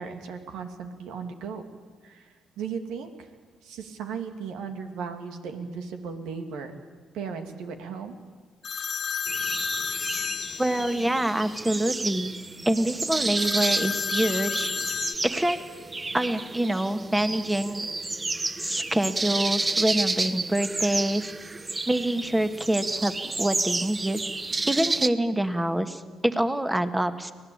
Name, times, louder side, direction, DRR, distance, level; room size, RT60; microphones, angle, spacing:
voice 1, 0.0-1.6 2.0-3.3 3.6-6.7 7.1-8.2, right 6 dB, 90° right, 6 dB, 2.6 m, -36 dB
sound 1, 8.6-11.2 13.4-15.2, left 7 dB, 50° left, 0.9 m, -31 dB
sound 2, 9.3-25.1, right 3 dB, 25° right, 1.0 m, -31 dB
voice 2, 10.6-12.3 12.6-14.7 15.2-15.6 16.1-17.9 18.6-21.3 21.9-24.2 24.7-27.3, right 1 dB, 10° right, 9 dB, 1.7 m, -26 dB
24.5 x 18.5 x 8.8 m, 1.5 s
cardioid pair, 90°, 0 cm